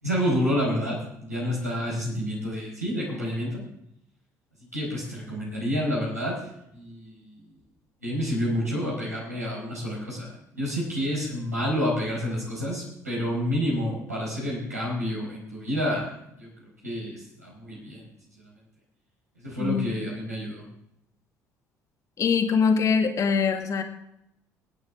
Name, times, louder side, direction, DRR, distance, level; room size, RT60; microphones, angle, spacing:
voice 1, 0.0-3.6 4.7-7.4 8.0-16.1 16.4-18.1 18.4-18.5 19.4-20.6, equal, 85° right, -5 dB, 4.8 m, -29 dB
voice 2, 22.2-23.8, left 6 dB, 40° left, 4 dB, 1.9 m, -23 dB
25.0 x 9.5 x 3.6 m, 0.79 s
figure-of-eight pair, 55°, 8 cm